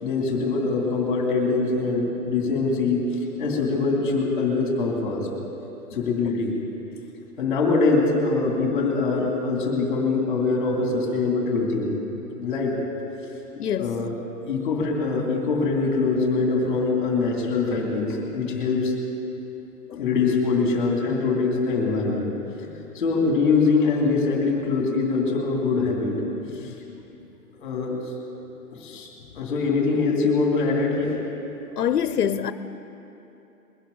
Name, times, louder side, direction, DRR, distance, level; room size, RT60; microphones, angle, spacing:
voice 1, 0.0-3.0 3.4-5.3 5.9-6.5 7.4-12.0 12.4-12.7 13.8-14.1 14.5-18.9 20.0-22.3 22.9-26.1 26.5-26.7 27.6-28.0 28.7-29.1 29.3-31.2, left 4 dB, 10° left, 2.3 m, -23 dB
voice 2, 13.6-14.1 19.9-20.1 22.8-22.9 26.4-27.0 31.8-32.5, left 9 dB, 75° left, 0.7 m, -27 dB
22.0 x 11.5 x 3.9 m
hypercardioid pair, 180°, 47 cm